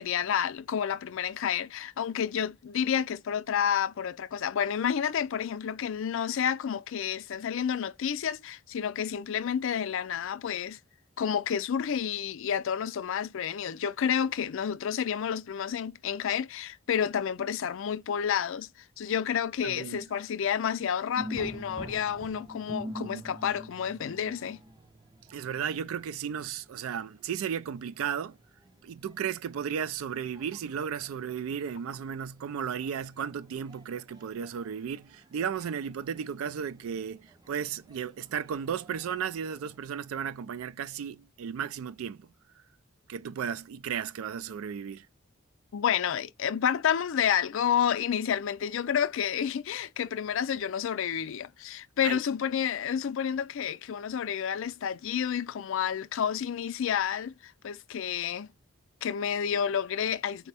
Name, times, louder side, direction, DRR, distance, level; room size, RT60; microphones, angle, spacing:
voice 1, 0.0-10.8 11.2-18.7 19.0-24.6 45.7-58.5 59.0-60.5, left 8 dB, 65° left, 0.4 m, -30 dB
voice 2, 19.6-20.0 25.3-28.4 28.8-42.3 43.1-45.1 52.0-52.2, right 7 dB, 75° right, 0.3 m, -34 dB
sound 1, 21.2-39.8, equal, 20° right, 0.5 m, -47 dB
4.4 x 2.1 x 4.1 m
head